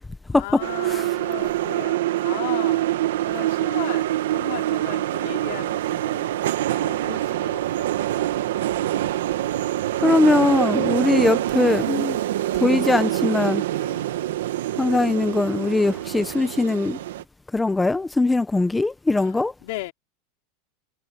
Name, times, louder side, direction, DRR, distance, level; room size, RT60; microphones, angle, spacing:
voice 1, 0.3-2.9 3.2-8.0 13.8-14.2 19.1-19.4 19.6-19.9, left 21 dB, 60° left, 3.6 m, -37 dB
sound 1, 0.6-17.2, right 14 dB, 90° right, 1.5 m, -25 dB
voice 2, 10.0-12.2 12.5-13.6 14.8-17.0 17.5-19.5, left 2 dB, 5° left, 0.8 m, -21 dB
supercardioid pair, 160°, 0 cm